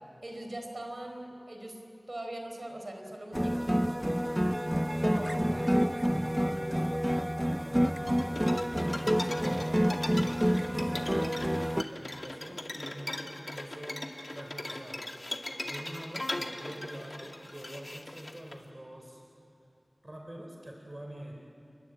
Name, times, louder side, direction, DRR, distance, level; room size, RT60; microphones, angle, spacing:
voice 1, 0.2-4.0 5.0-5.3 5.5-5.6 8.8-9.0 10.6-10.9, right 1 dB, 55° right, 3 dB, 4.5 m, -42 dB
sound 1, 3.3-11.8, equal, 5° right, 0.7 m, -28 dB
voice 2, 5.0-10.1 10.6-14.0 14.3-15.0 15.3-19.2 20.0-21.3, right 1 dB, 35° right, 1 dB, 3.5 m, -46 dB
sound 2, 8.1-18.5, left 1 dB, 45° left, 2.1 m, -39 dB
29.5 x 22.5 x 8.8 m, 2.7 s
wide cardioid pair, 40°, 0 cm